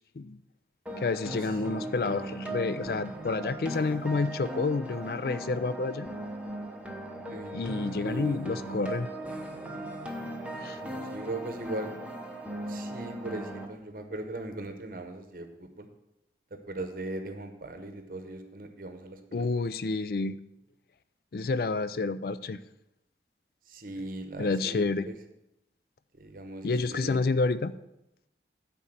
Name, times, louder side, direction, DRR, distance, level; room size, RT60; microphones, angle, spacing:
sound 1, 0.9-13.7, right 1 dB, 5° right, 0.8 m, -38 dB
voice 1, 1.0-6.1 7.5-9.1 10.6-10.8 19.3-20.4 21.3-22.6 24.4-25.1 26.6-27.7, left 3 dB, 55° left, 15 dB, 0.4 m, -29 dB
voice 2, 7.3-8.4 10.7-11.9 12.7-15.9 16.7-19.4 23.7-25.1 26.2-27.2, right 2 dB, 50° right, 7 dB, 0.8 m, -39 dB
9.9 x 4.2 x 7.6 m, 0.88 s
head